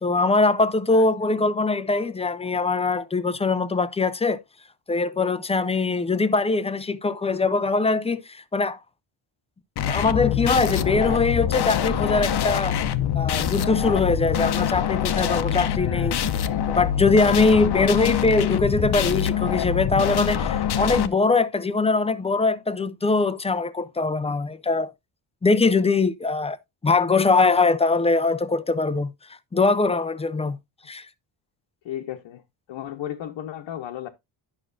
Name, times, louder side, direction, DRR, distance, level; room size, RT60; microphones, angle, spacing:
voice 1, 0.0-4.4 4.9-8.8 9.8-12.8 13.1-16.1 16.7-24.9 25.4-26.6 26.8-29.1 29.5-30.6 30.9-31.1, left 3 dB, 15° left, 0.4 m, -22 dB
voice 2, 0.9-1.3 15.7-16.2 31.8-32.4 32.7-34.1, left 11 dB, 70° left, 1.0 m, -35 dB
sound 1, 9.8-21.1, left 9 dB, 55° left, 0.7 m, -24 dB
11.0 x 6.1 x 2.5 m
cardioid pair, 135°, 50 cm